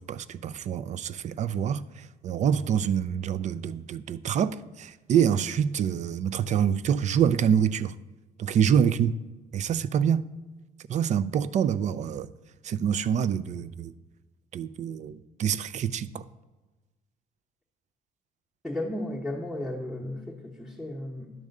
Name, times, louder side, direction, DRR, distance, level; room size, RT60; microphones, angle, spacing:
voice 1, 0.0-8.0 8.4-9.2 9.5-10.2 10.9-12.3 12.6-13.9 14.5-16.2, right 8 dB, 45° right, 0.4 m, -26 dB
voice 2, 18.6-21.3, left 1 dB, ahead, 1.0 m, -34 dB
10.5 x 3.6 x 6.5 m
cardioid pair, 110°, 17 cm